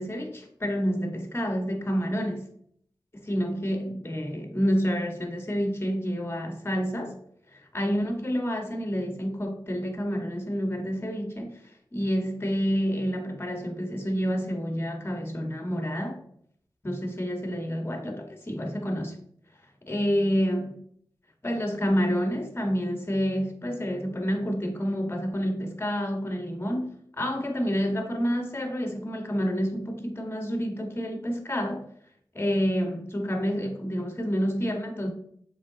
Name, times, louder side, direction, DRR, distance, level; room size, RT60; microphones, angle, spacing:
voice 1, 0.0-2.5 3.1-7.2 7.5-11.6 11.9-16.2 16.8-19.2 19.9-20.8 21.4-31.8 32.3-35.1, equal, 30° left, 4 dB, 2.0 m, -28 dB
7.2 x 5.4 x 4.2 m, 0.66 s
cardioid pair, 50°, 8 cm